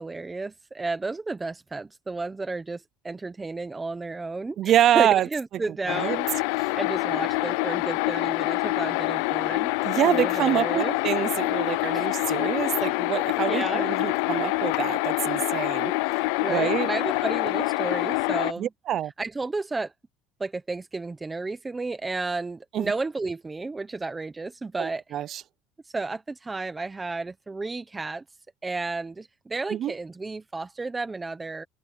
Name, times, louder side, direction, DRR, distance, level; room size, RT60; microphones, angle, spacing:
voice 1, 0.0-6.3 6.7-11.0 11.9-12.1 13.5-13.9 15.5-15.7 16.4-18.7 19.2-19.9 20.4-25.0 25.9-28.2 28.6-31.6, right 3 dB, 10° right, 1.0 m, -32 dB
voice 2, 4.6-5.3 5.7-6.2 9.8-15.9 16.5-16.9 18.6-19.1 22.7-22.9 24.8-25.4 29.7-29.9, right 11 dB, 40° right, 0.6 m, -26 dB
sound 1, 5.9-18.5, left 25 dB, 90° left, 0.5 m, -26 dB
cardioid pair, 155°, 0 cm